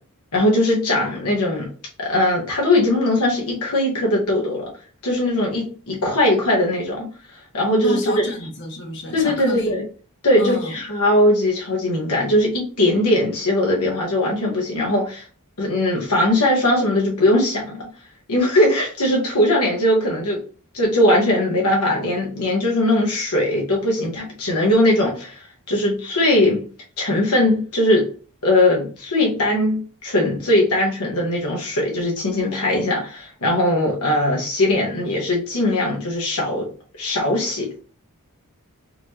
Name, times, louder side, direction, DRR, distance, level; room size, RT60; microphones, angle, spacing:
voice 1, 0.3-1.7 2.0-4.7 5.0-7.1 7.5-8.1 9.1-9.8 10.2-15.2 15.6-17.9 18.3-20.4 20.7-25.4 25.7-26.6 27.0-28.0 28.4-36.7 37.0-37.8, left 1 dB, 80° left, 1.3 m, -20 dB
voice 2, 7.8-9.7 10.4-10.7, equal, 55° left, 1.1 m, -29 dB
4.2 x 3.1 x 2.8 m
head